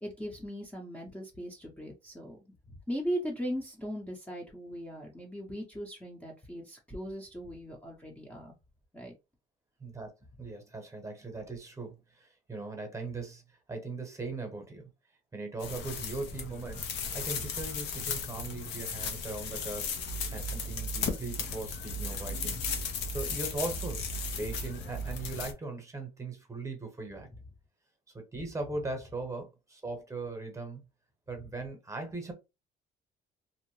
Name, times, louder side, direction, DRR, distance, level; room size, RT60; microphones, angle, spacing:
voice 1, 0.0-2.4 2.7-8.5 8.9-9.1, equal, 5° left, 0.6 m, -38 dB
voice 2, 9.8-10.1 10.4-13.4 13.7-14.9 15.3-19.9 20.3-22.6 23.1-24.0 24.4-27.3 28.1-30.8 31.3-32.3, right 3 dB, 20° right, 0.9 m, -39 dB
sound 1, 15.6-25.5, left 4 dB, 85° left, 0.7 m, -35 dB
2.6 x 2.0 x 3.0 m
cardioid pair, 110°, 17 cm